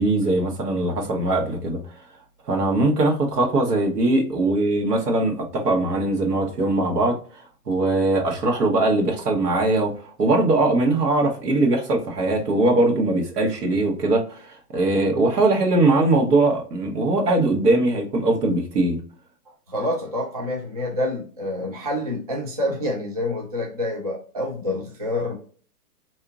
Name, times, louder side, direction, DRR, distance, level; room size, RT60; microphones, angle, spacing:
voice 1, 0.0-1.8 2.5-19.0, right 2 dB, 85° right, 1.2 m, -21 dB
voice 2, 19.7-25.4, left 1 dB, 30° right, 0.4 m, -27 dB
3.6 x 2.8 x 2.3 m
hypercardioid pair, 155°, 46 cm